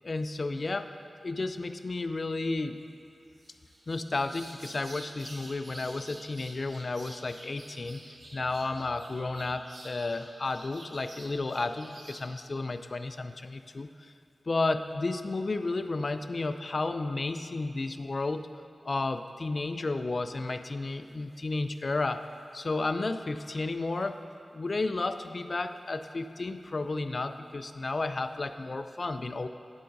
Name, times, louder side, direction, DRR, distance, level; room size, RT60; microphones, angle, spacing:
voice 1, 0.0-0.9 1.2-2.8 3.9-8.0 8.3-14.1 14.5-18.5 18.8-22.2 22.5-24.2 24.5-29.5, left 3 dB, 55° left, 9 dB, 0.3 m, -32 dB
sound 1, 3.3-12.3, right 1 dB, 80° right, 1.0 m, -50 dB
9.4 x 8.4 x 2.6 m, 2.5 s
cardioid pair, 55°, 0 cm